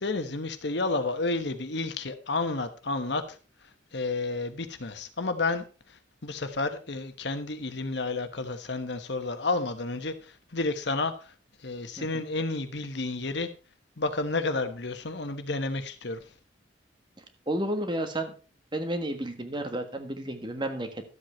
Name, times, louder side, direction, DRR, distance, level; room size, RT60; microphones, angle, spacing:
voice 1, 0.0-3.2 3.9-5.6 6.2-10.1 10.5-11.1 11.6-13.5 14.0-16.2, left 3 dB, 65° left, 1.2 m, -30 dB
voice 2, 17.5-18.3 18.7-21.0, right 1 dB, 25° right, 1.4 m, -31 dB
12.5 x 7.9 x 4.4 m
head